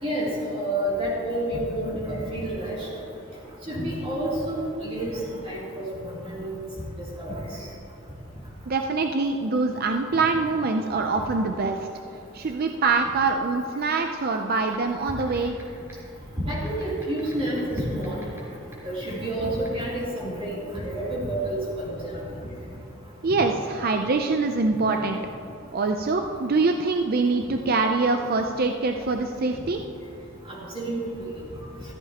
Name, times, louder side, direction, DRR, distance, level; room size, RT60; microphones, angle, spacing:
voice 1, 0.0-2.9 3.7-5.2 5.4-6.5 7.2-7.3 16.4-18.2 18.8-22.2 30.5-31.0, right 1 dB, 30° right, -8 dB, 3.1 m, -29 dB
voice 2, 8.7-11.8 12.3-15.6 23.2-25.2 25.7-29.8, right 3 dB, 50° right, 5 dB, 0.5 m, -24 dB
sound 1, 14.7-14.8 15.2-15.6 15.9-16.0 16.7-18.4 18.7-18.8 19.7-19.8, right 2 dB, 15° right, 3.2 m, -46 dB
14.0 x 14.0 x 2.9 m, 2.8 s
head